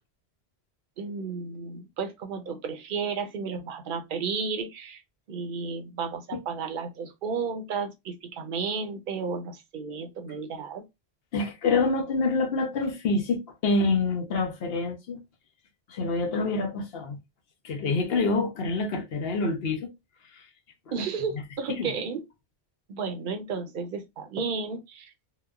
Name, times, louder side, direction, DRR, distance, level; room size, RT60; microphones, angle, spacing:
voice 1, 1.0-5.0 5.3-10.8 20.9-22.2 22.9-25.1, right 5 dB, 60° right, 0.7 m, -33 dB
voice 2, 11.3-15.2 15.9-17.2 17.6-19.9 20.3-20.5 21.0-21.1 21.3-21.4 21.8-21.9, left 3 dB, 70° left, 0.9 m, -27 dB
2.9 x 2.1 x 2.3 m
omnidirectional pair, 1.0 m